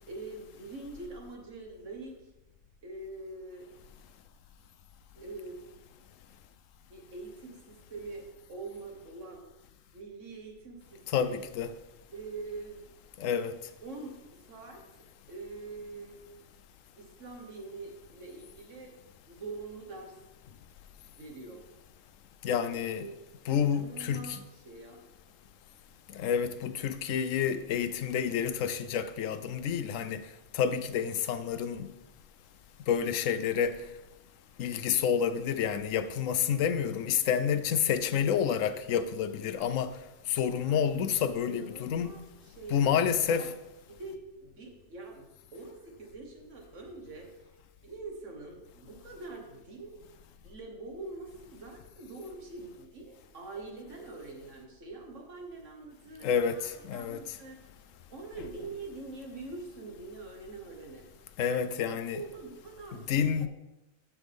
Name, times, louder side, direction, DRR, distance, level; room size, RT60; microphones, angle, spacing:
voice 1, 0.1-2.1 2.8-3.7 5.1-5.6 6.9-9.5 9.9-11.3 12.1-12.8 13.8-14.8 15.3-16.2 16.9-18.9 19.3-20.2 21.2-21.6 22.8-23.1 23.6-25.0 40.6-41.1 41.5-43.5 43.9-47.3 47.8-50.0 50.4-57.6 58.1-61.0 61.9-63.1, right 3 dB, 70° right, 1.8 m, -44 dB
voice 2, 11.1-11.7 13.2-13.5 22.4-23.1 23.5-24.4 26.1-30.3 30.5-31.9 32.9-33.8 34.6-40.0 40.3-42.1 42.7-43.5 56.2-57.2 61.4-62.2 62.9-63.5, left 8 dB, 90° left, 1.0 m, -29 dB
14.0 x 5.7 x 3.5 m
omnidirectional pair, 1.3 m